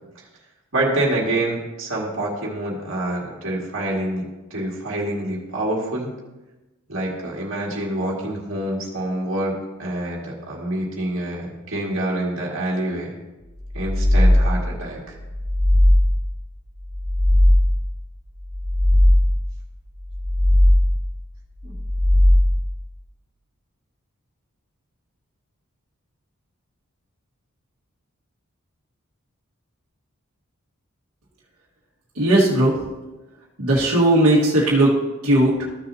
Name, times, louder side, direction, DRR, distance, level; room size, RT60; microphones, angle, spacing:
voice 1, 0.7-4.3 4.5-6.1 6.9-13.1 13.7-15.1 21.6-21.7, right 1 dB, 60° right, -3 dB, 2.0 m, -26 dB
sound 1, 13.7-14.7 15.2-16.3 16.8-17.9 18.4-19.5 20.0-21.1 21.7-22.8, left 1 dB, 25° left, 1.3 m, -17 dB
voice 2, 32.1-32.8 33.6-35.7, right 1 dB, 80° right, -6 dB, 1.7 m, -17 dB
14.0 x 6.7 x 2.8 m, 1.1 s
head